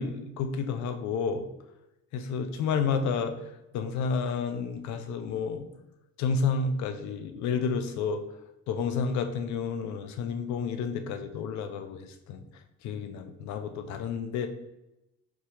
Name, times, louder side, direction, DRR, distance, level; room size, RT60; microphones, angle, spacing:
voice 1, 0.0-1.5 2.1-3.4 3.7-5.7 6.2-8.2 8.7-12.4 12.8-14.5, left 5 dB, 60° left, 8 dB, 0.5 m, -30 dB
4.2 x 2.2 x 2.9 m, 0.92 s
hypercardioid pair, 50°, 32 cm